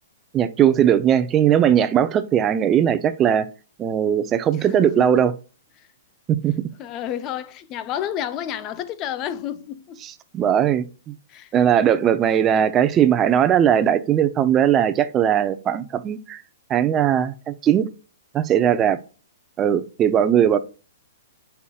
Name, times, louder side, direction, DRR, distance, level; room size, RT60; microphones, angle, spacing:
voice 1, 0.3-3.5 3.8-5.3 6.4-6.5 10.0-10.9 11.5-16.4 16.7-17.9 18.3-19.0 19.6-20.6, right 9 dB, 20° right, 0.7 m, -19 dB
voice 2, 4.6-5.3 6.8-10.0 11.3-11.5 12.5-12.6, left 10 dB, 30° left, 0.7 m, -31 dB
8.1 x 5.7 x 2.4 m
hypercardioid pair, 140°, 0 cm